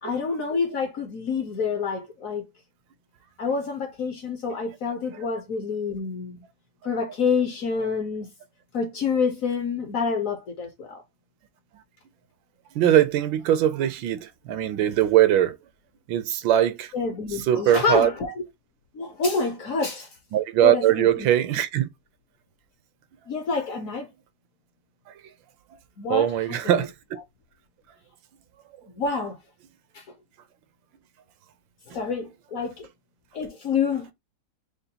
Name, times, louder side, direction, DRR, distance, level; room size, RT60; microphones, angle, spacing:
voice 1, 0.0-2.4 3.4-6.4 6.8-8.3 8.7-11.0 16.9-18.3 18.9-20.1 20.6-21.3 23.3-24.1 26.0-26.9 29.0-29.4 29.9-30.0 31.9-32.9 33.3-34.1, left 5 dB, 60° left, 0.9 m, -27 dB
voice 2, 12.7-15.6 16.1-16.9 17.5-18.1 20.3-21.9 26.1-26.9, right 11 dB, 75° right, 1.3 m, -21 dB
6.6 x 2.2 x 2.7 m
omnidirectional pair, 2.2 m